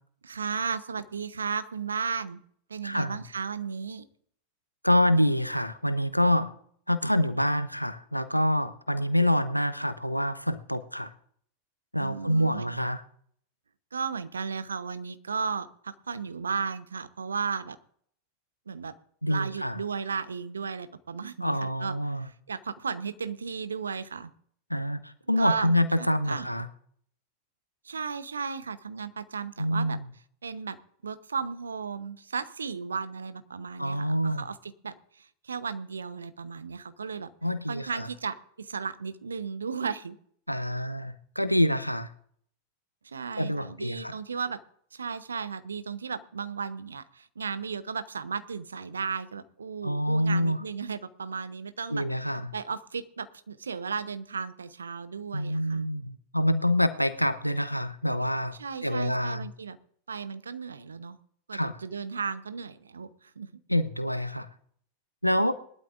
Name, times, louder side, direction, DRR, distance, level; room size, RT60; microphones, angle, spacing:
voice 1, 0.2-2.4 2.7-4.1 12.0-12.8 13.9-17.8 18.7-18.9 19.3-24.3 25.4-25.7 26.0-26.5 27.8-30.0 30.4-30.8 31.0-37.3 37.7-40.2 43.0-44.6 44.9-52.1 52.5-55.8 58.6-59.8 60.1-61.2 61.5-63.5, right 5 dB, 75° right, 13 dB, 0.9 m, -35 dB
voice 2, 2.8-3.2 4.8-6.5 6.9-11.1 11.9-13.0 19.2-19.8 21.4-22.2 24.7-26.7 29.6-30.0 33.8-34.4 37.4-38.1 40.5-42.1 43.4-44.1 49.8-50.6 51.9-52.5 55.3-58.5 58.8-59.5 61.5-61.7 63.7-64.5 65.2-65.6, equal, 90° left, 12 dB, 0.8 m, -26 dB
21.0 x 12.0 x 2.5 m, 0.63 s
figure-of-eight pair, 90°, 0 cm